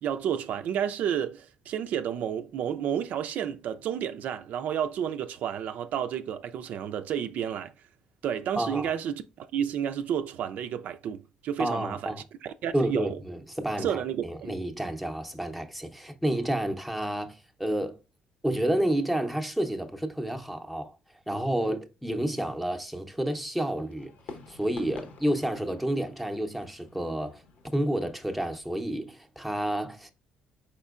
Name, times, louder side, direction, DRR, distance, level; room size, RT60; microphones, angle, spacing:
voice 1, 0.0-7.7 8.2-12.1 12.4-13.2 13.8-14.6, right 9 dB, 70° right, 0.4 m, -31 dB
voice 2, 8.6-8.9 11.6-12.2 12.7-18.0 18.4-20.9 21.3-24.1 24.5-27.4 27.7-30.1, right 1 dB, ahead, 0.7 m, -30 dB
Fireworks, 23.8-28.8, left 4 dB, 70° left, 0.9 m, -48 dB
4.3 x 4.3 x 2.4 m
cardioid pair, 105°, 3 cm